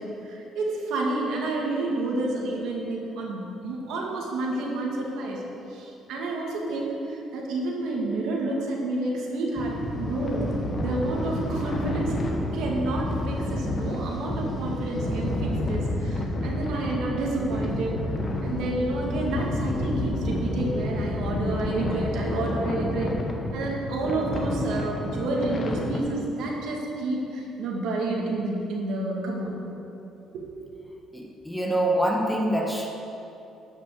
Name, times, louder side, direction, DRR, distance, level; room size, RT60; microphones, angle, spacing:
voice 1, 0.0-5.4 5.7-10.5 10.8-12.2 12.5-18.0 18.4-23.2 23.5-29.6 30.3-30.5, right 2 dB, 80° right, -1 dB, 2.3 m, -29 dB
sound 1, 9.6-26.0, left 1 dB, 30° left, 1.4 m, -30 dB
sound 2, 10.7-23.2, equal, 50° right, 1.7 m, -36 dB
voice 2, 31.1-32.9, right 1 dB, 5° left, -1 dB, 1.5 m, -25 dB
12.0 x 6.1 x 7.6 m, 2.9 s
cardioid pair, 130°, 0 cm